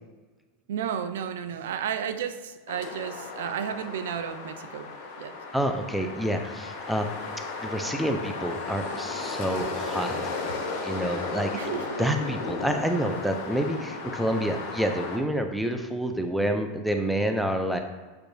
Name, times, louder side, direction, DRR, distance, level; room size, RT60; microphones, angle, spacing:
voice 1, 0.7-4.9 5.2-5.3 11.5-12.0, right 8 dB, 90° right, 10 dB, 0.3 m, -32 dB
sound 1, 2.7-15.2, left 3 dB, 65° left, 0.9 m, -35 dB
voice 2, 5.5-7.2 7.6-10.2 10.8-11.6 12.0-17.8, right 1 dB, ahead, 5 dB, 0.3 m, -28 dB
6.5 x 2.3 x 2.6 m, 1.3 s
supercardioid pair, 145°, 0 cm